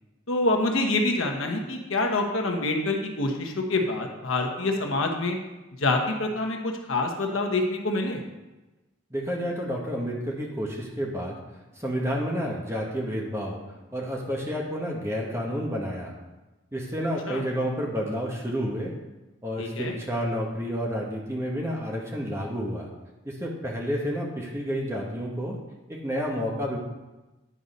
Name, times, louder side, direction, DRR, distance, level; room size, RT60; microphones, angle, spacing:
voice 1, 0.3-5.4 5.8-8.2 17.3-17.4 19.6-19.9, left 2 dB, 85° left, 3 dB, 1.1 m, -26 dB
voice 2, 9.1-16.1 16.7-18.9 19.4-22.9 23.2-25.6 25.9-26.8, equal, 15° right, -1 dB, 1.1 m, -30 dB
9.8 x 4.1 x 5.2 m, 1.1 s
head